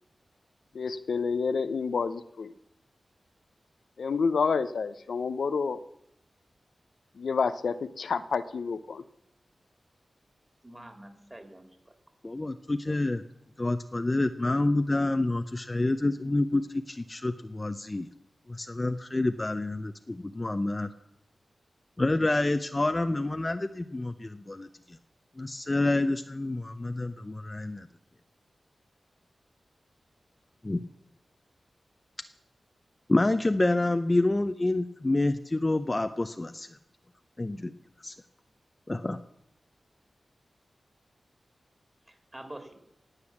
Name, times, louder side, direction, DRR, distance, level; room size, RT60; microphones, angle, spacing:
voice 1, 0.7-2.5 4.0-5.8 7.2-9.0, left 5 dB, 85° left, 11 dB, 0.6 m, -29 dB
voice 2, 10.6-11.9 42.1-42.7, right 1 dB, 20° right, 5 dB, 3.1 m, -46 dB
voice 3, 12.2-13.2 13.6-18.1 18.5-20.9 22.0-24.7 25.4-27.9 30.6-30.8 33.1-36.7 37.4-37.7 38.0-38.1 38.9-39.2, left 2 dB, 30° left, 8 dB, 0.7 m, -28 dB
18.0 x 8.3 x 7.2 m, 0.80 s
cardioid pair, 65°, 0 cm